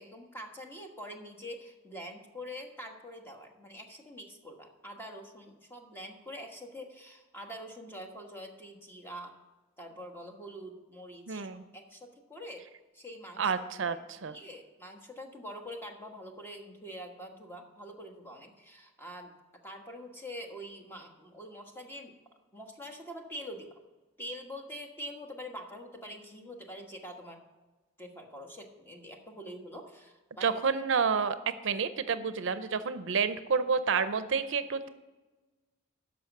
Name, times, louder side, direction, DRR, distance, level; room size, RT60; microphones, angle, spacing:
voice 1, 0.0-9.3 9.8-12.6 12.9-19.3 19.6-22.1 22.5-23.7 24.2-27.4 28.0-30.5 30.9-31.0 32.2-32.3, equal, 10° left, 2 dB, 1.3 m, -45 dB
voice 2, 11.3-11.6 13.4-14.0 14.2-14.3 30.4-34.9, right 5 dB, 70° right, 12 dB, 0.6 m, -29 dB
12.5 x 5.1 x 7.1 m, 1.2 s
head